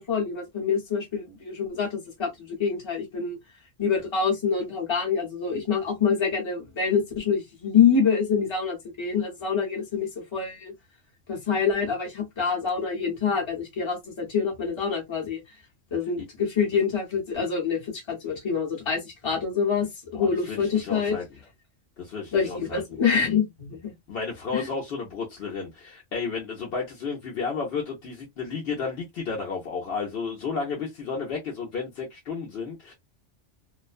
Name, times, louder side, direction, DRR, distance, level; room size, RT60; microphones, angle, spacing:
voice 1, 0.0-3.4 3.8-10.7 11.3-15.4 15.9-21.2 22.3-23.9 24.5-24.7, left 6 dB, 25° left, 0.8 m, -26 dB
voice 2, 20.1-21.2 22.0-22.8 24.1-32.9, left 5 dB, 60° left, 0.9 m, -32 dB
2.4 x 2.1 x 2.4 m
omnidirectional pair, 1.2 m